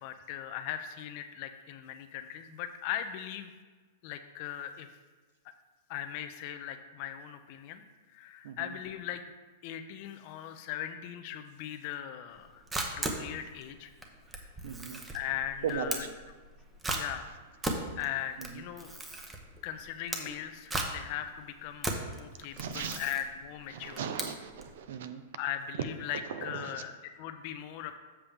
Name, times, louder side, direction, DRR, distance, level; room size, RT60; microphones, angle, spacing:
voice 1, 0.0-3.5 4.0-4.9 5.9-7.8 8.1-9.2 9.6-12.6 12.9-13.9 15.1-16.1 16.9-17.4 17.9-18.9 19.6-24.1 25.4-28.0, left 11 dB, 50° left, 8 dB, 0.6 m, -39 dB
voice 2, 8.4-8.8 14.6-15.0 15.6-16.0 18.4-18.6 22.6-23.1 23.7-25.2 26.3-26.8, right 7 dB, 70° right, 9 dB, 0.7 m, -38 dB
Camera, 12.3-24.8, right 2 dB, 10° right, 0.9 m, -38 dB
7.3 x 6.7 x 3.5 m, 1.4 s
hypercardioid pair, 135°, 0 cm